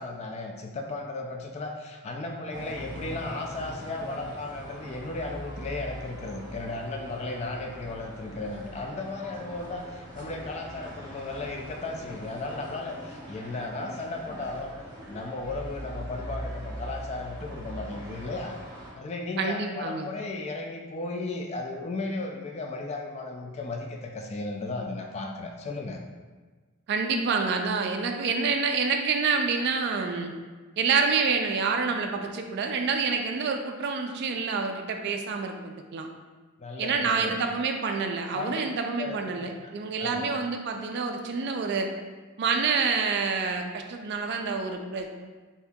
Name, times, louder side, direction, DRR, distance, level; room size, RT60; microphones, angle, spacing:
voice 1, 0.0-14.7 15.1-18.6 18.9-26.0 36.6-37.4 38.3-38.6 39.0-39.5 40.0-40.3, left 2 dB, 30° left, 2 dB, 0.3 m, -35 dB
sound 1, 2.5-18.9, right 1 dB, 20° right, 0.7 m, -41 dB
voice 2, 19.4-20.1 26.9-30.3 30.8-36.1 36.8-41.9 42.4-45.1, right 5 dB, 50° right, 4 dB, 0.3 m, -27 dB
2.8 x 2.7 x 3.5 m, 1.3 s
head